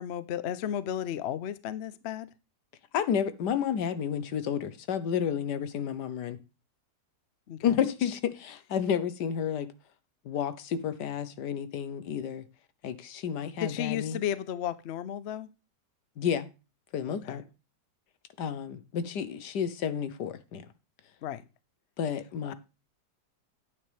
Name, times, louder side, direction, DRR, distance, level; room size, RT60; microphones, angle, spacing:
voice 1, 0.0-2.3 7.5-7.8 13.6-15.5 17.1-17.4 21.2-21.5 22.4-22.5, left 10 dB, 55° left, 15 dB, 0.7 m, -34 dB
voice 2, 2.9-6.4 7.6-9.7 10.2-12.4 12.8-14.2 16.2-16.5 16.9-17.4 18.4-20.7 22.0-22.5, left 8 dB, 80° left, 13 dB, 1.5 m, -31 dB
9.8 x 8.9 x 3.4 m, 0.29 s
omnidirectional pair, 1.8 m